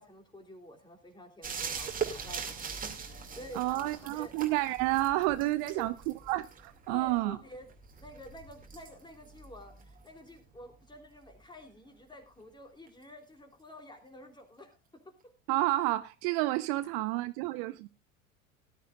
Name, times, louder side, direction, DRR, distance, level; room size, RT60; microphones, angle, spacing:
voice 1, 0.0-2.8 3.1-4.3 5.6-5.9 6.9-7.7 8.0-14.8, left 1 dB, 10° left, 3.1 m, -49 dB
sound 1, 1.4-10.8 12.9-13.0, right 6 dB, 20° right, 2.4 m, -42 dB
voice 2, 3.5-5.9 6.3-7.4 15.5-17.9, right 18 dB, 45° right, 0.6 m, -30 dB
18.5 x 11.5 x 2.4 m
figure-of-eight pair, 75°, 41 cm